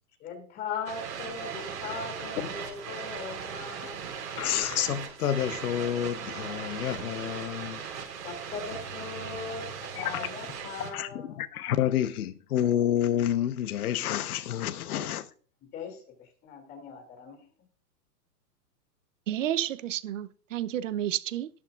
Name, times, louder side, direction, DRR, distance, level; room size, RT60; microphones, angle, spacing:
voice 1, 0.2-4.0 8.2-11.4 14.9-15.0 15.6-17.5, left 5 dB, 20° left, 2.6 m, -39 dB
sound 1, 0.9-10.9, right 7 dB, 90° right, 4.1 m, -38 dB
voice 2, 4.4-7.8 9.9-10.3 10.9-11.1 11.4-15.3, left 11 dB, 65° left, 1.1 m, -29 dB
voice 3, 19.3-21.5, right 11 dB, 50° right, 0.8 m, -31 dB
18.5 x 7.3 x 2.5 m
hypercardioid pair, 170°, 48 cm